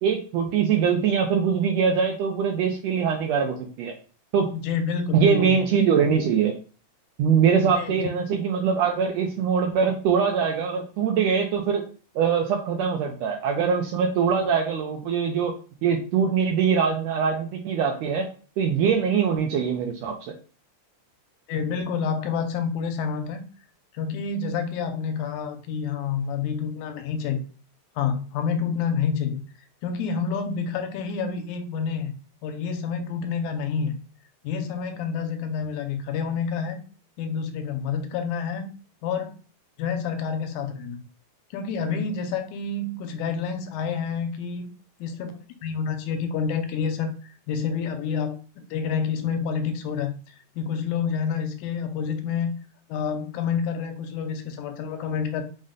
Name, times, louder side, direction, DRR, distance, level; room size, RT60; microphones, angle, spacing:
voice 1, 0.0-3.9 4.3-4.5 5.1-6.6 7.2-11.8 12.1-15.6 15.8-18.3 18.6-20.3, right 6 dB, 80° right, 3 dB, 1.5 m, -23 dB
voice 2, 4.5-5.6 7.6-8.0 21.5-23.4 23.9-27.4 28.0-29.4 29.8-32.1 32.4-33.9 34.4-36.8 37.2-38.7 39.0-39.3 39.8-41.0 41.5-44.7 45.0-50.1 50.6-52.5 52.9-55.4, left 6 dB, 85° left, 8 dB, 2.0 m, -28 dB
5.3 x 2.1 x 3.7 m, 0.38 s
omnidirectional pair, 3.5 m